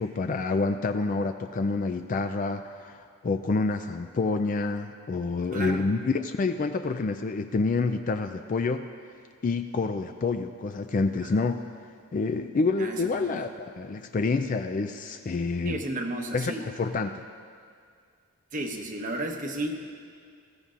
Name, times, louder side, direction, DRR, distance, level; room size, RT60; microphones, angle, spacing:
voice 1, 0.0-8.9 9.4-11.7 12.1-15.8 16.3-17.2, left 3 dB, 35° left, 7 dB, 0.3 m, -28 dB
voice 2, 5.5-5.9 11.2-11.3 12.8-13.5 15.6-16.7 18.5-20.0, right 1 dB, 35° right, 3 dB, 1.0 m, -33 dB
19.5 x 15.0 x 2.5 m, 2.1 s
head